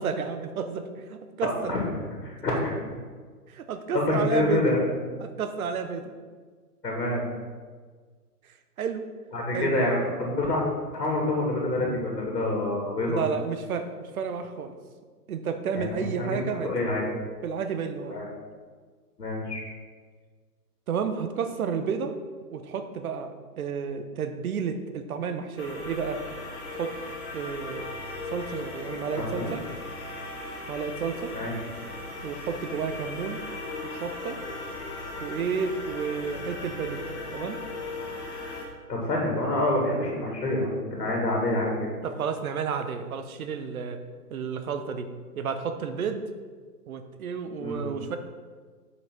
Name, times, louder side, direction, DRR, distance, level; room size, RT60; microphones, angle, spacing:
voice 1, 0.0-1.7 3.5-4.8 5.2-6.2 8.8-9.0 9.5-9.7 13.1-14.7 15.3-16.7 17.4-18.2 20.9-22.1 22.5-26.2 26.7-27.0 27.3-27.9 28.3-29.6 30.7-31.4 32.2-33.4 34.0-34.4 35.2-37.1 37.3-37.6 42.0-44.0 44.3-45.1 45.4-46.2 46.9-48.2, right 6 dB, 60° right, 9 dB, 0.9 m, -31 dB
voice 2, 1.4-1.8 2.2-2.7 3.9-4.8 6.8-7.3 9.3-10.6 10.9-13.2 15.8-17.0 18.1-18.3 19.2-19.6 29.2-29.6 31.3-31.5 38.9-41.9 47.6-47.8, left 1 dB, 80° left, -1 dB, 2.1 m, -27 dB
sound 1, 25.6-38.7, left 2 dB, 45° left, 1.7 m, -37 dB
6.2 x 5.9 x 4.4 m, 1.5 s
hypercardioid pair, 135°, 48 cm